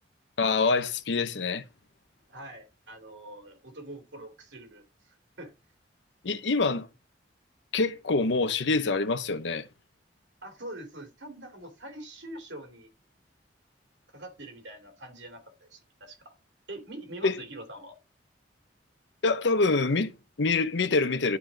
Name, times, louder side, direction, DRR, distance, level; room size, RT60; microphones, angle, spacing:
voice 1, 0.4-1.6 6.2-6.9 7.7-9.7 17.2-17.4 19.2-21.4, left 3 dB, 75° left, 0.7 m, -26 dB
voice 2, 2.3-5.5 10.4-12.9 14.1-16.4 16.7-18.0, right 1 dB, 75° right, 2.6 m, -44 dB
11.5 x 4.3 x 3.9 m
head